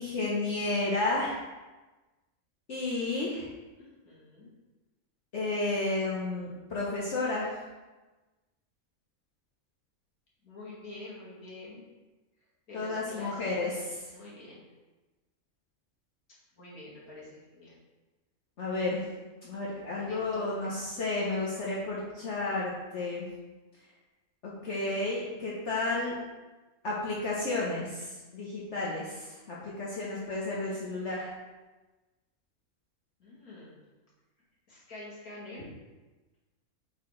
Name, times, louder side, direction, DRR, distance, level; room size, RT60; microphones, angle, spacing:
voice 1, 0.0-1.4 2.7-3.5 5.3-7.5 12.7-14.0 18.6-19.0 19.4-23.3 24.4-26.1 26.8-31.3, left 2 dB, 55° left, -6 dB, 1.2 m, -32 dB
voice 2, 3.8-4.5 10.4-11.8 12.7-13.8 14.1-14.6 16.5-17.7 20.1-20.8 33.2-33.8 34.7-35.7, left 1 dB, 75° left, -6 dB, 2.4 m, -47 dB
7.9 x 4.2 x 3.2 m, 1.2 s
omnidirectional pair, 1.5 m